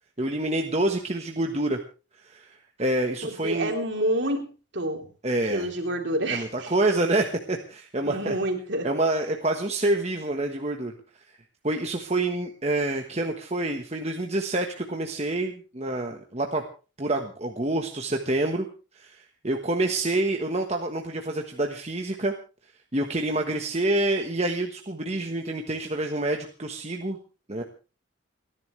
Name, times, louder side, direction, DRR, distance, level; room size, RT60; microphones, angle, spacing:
voice 1, 0.2-1.8 2.2-2.5 2.8-3.7 5.2-5.6 6.3-8.3 8.8-10.9 11.6-16.6 17.0-18.7 18.9-19.2 19.4-22.3 22.9-27.2 27.5-27.6, right 2 dB, 30° right, 3 dB, 1.4 m, -27 dB
voice 2, 3.2-4.5 4.7-5.1 5.5-6.7 8.0-8.9, right 1 dB, 60° right, 3 dB, 3.6 m, -28 dB
29.5 x 11.0 x 3.3 m, 0.35 s
head